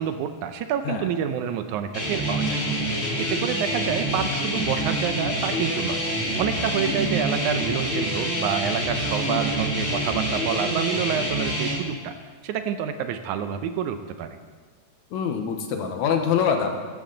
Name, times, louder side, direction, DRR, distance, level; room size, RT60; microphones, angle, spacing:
voice 1, 0.0-2.6 3.2-6.0 6.4-12.1 12.4-14.4, right 8 dB, 80° right, 9 dB, 2.0 m, -28 dB
sound 1, 1.9-11.7, right 1 dB, 25° left, 4.2 m, -26 dB
voice 2, 15.1-16.8, left 7 dB, 70° left, 4 dB, 2.2 m, -24 dB
14.0 x 14.0 x 3.9 m, 1.5 s
omnidirectional pair, 3.6 m